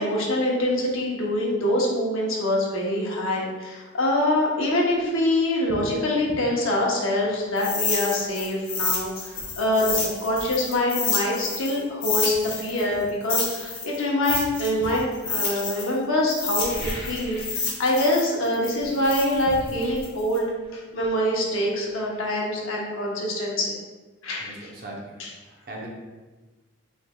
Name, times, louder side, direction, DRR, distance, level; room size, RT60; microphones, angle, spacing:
voice 1, 0.0-20.5 20.7-23.7 24.2-24.7 25.2-25.3, left 1 dB, 75° left, -2 dB, 0.9 m, -25 dB
sound 1, 5.0-5.1 5.7-5.9 6.3-6.5 8.4-8.5 8.9-10.6 11.6-11.8 12.3-13.7 14.3-15.1 16.4-17.7 17.9-18.3 18.6-22.2 22.5-22.6, equal, 5° left, 1.0 m, -40 dB
sound 2, 7.6-11.8 12.0-15.9 16.3-20.4, left 5 dB, 45° left, 1.0 m, -29 dB
voice 2, 24.4-25.9, right 1 dB, 45° right, -2 dB, 0.7 m, -40 dB
4.4 x 3.6 x 2.2 m, 1.3 s
head